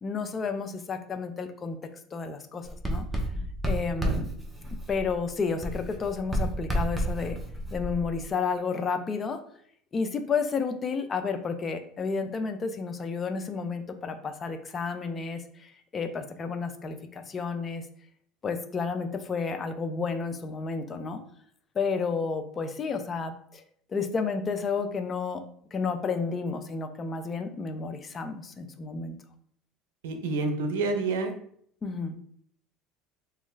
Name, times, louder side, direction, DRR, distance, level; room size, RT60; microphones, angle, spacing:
voice 1, 0.0-1.8 2.1-3.1 3.6-4.3 4.9-7.4 7.7-9.4 9.9-17.9 18.4-21.2 21.7-23.6 23.9-25.4 25.7-29.2 31.8-32.2, left 5 dB, 35° left, 7 dB, 0.4 m, -31 dB
Writing, 2.6-5.3 5.6-8.3, equal, 10° right, 0.8 m, -31 dB
voice 2, 30.0-31.3, right 3 dB, 85° right, 6 dB, 0.5 m, -28 dB
3.1 x 2.4 x 3.1 m, 0.63 s
supercardioid pair, 90°, 0 cm